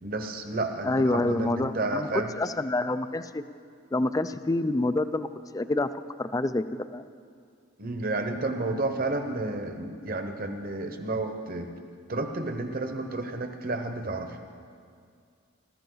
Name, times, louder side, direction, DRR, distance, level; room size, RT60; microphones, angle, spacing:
voice 1, 0.0-2.3 7.8-11.7 12.1-14.4, right 2 dB, 45° right, 6 dB, 1.1 m, -31 dB
voice 2, 0.8-3.4 3.9-5.3 5.5-5.9 6.2-7.0, left 2 dB, 15° left, 12 dB, 0.3 m, -27 dB
19.5 x 13.5 x 3.9 m, 2.2 s
head